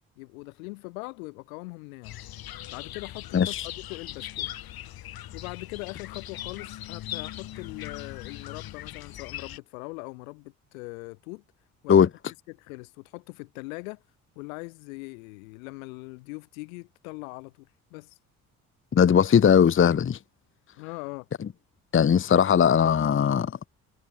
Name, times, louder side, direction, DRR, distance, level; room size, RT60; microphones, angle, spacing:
voice 1, 0.2-2.2 2.7-4.5 5.3-11.4 11.8-12.0 12.5-14.0 14.4-18.2 20.8-21.3, left 27 dB, 75° left, 4.1 m, -41 dB
sound 1, 2.0-9.6, left 13 dB, 60° left, 5.2 m, -39 dB
voice 2, 3.3-3.7 11.9-12.1 18.9-20.2 21.9-23.7, left 8 dB, 30° left, 1.0 m, -19 dB
hypercardioid pair, 50°, 41 cm